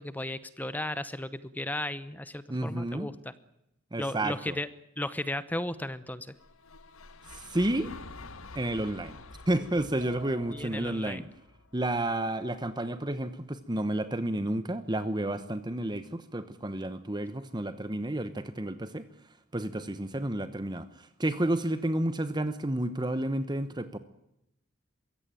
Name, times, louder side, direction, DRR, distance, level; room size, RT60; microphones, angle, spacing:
voice 1, 0.0-3.3 4.0-4.7 5.0-6.3 10.5-11.3, left 1 dB, 10° left, 15 dB, 0.8 m, -35 dB
voice 2, 2.5-3.1 3.9-4.6 7.3-7.9 8.5-9.2 9.5-11.2 11.7-19.1 19.5-24.0, right 1 dB, 20° right, 11 dB, 1.1 m, -31 dB
sound 1, 6.3-12.5, left 3 dB, 85° left, 1.6 m, -49 dB
sound 2, 10.0-11.2, right 5 dB, 60° right, 2.4 m, -48 dB
23.0 x 16.5 x 9.1 m, 0.83 s
head